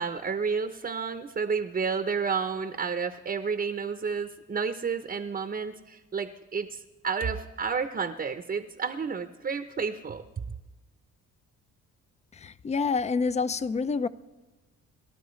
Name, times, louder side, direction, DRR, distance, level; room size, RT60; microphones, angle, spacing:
voice 1, 0.0-10.2, right 5 dB, 30° right, 0.7 m, -31 dB
voice 2, 12.4-14.1, left 4 dB, 25° left, 0.4 m, -27 dB
23.0 x 12.0 x 3.2 m
cardioid pair, 90°, 30 cm